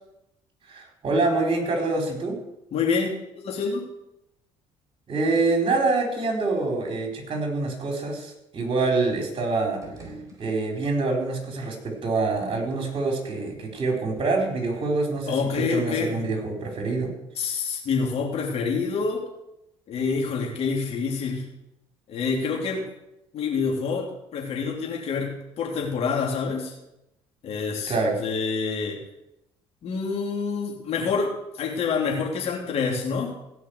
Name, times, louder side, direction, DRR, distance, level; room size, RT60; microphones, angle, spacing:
voice 1, 0.7-2.4 5.1-9.8 10.4-17.1 27.9-28.2, right 3 dB, 45° right, 2 dB, 4.2 m, -26 dB
voice 2, 2.7-3.9 15.3-16.3 17.4-19.2 19.9-21.5 22.1-22.9 23.3-26.7 27.4-27.9 28.2-29.0 29.8-33.4, left 5 dB, 60° left, -1 dB, 3.2 m, -27 dB
sound 1, 9.6-11.1, right 2 dB, 25° right, 4.3 m, -45 dB
16.5 x 5.6 x 8.0 m, 0.86 s
supercardioid pair, 85°, 12 cm